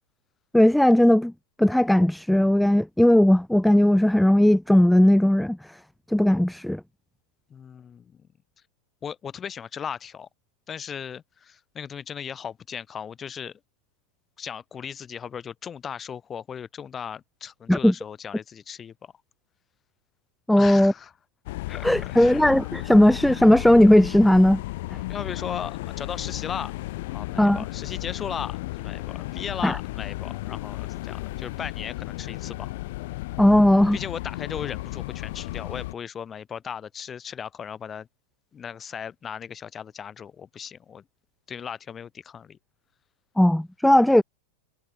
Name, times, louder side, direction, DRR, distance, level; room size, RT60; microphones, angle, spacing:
voice 1, 0.5-1.3 1.6-5.6 6.1-6.8 17.7-17.9 20.5-20.9 21.8-24.6 27.4-27.6 29.6-29.8 33.4-34.0 43.4-44.2, left 1 dB, ahead, 0.6 m, -17 dB
voice 2, 7.5-8.2 9.0-10.3 10.7-13.6 14.4-19.1 20.6-21.1 21.7-22.4 25.1-26.7 27.1-32.7 33.9-38.1 38.5-41.0 41.5-42.6, left 7 dB, 20° left, 6.8 m, -37 dB
sound 1, 21.5-35.9, left 19 dB, 50° left, 4.0 m, -34 dB
figure-of-eight pair, 90°, 0 cm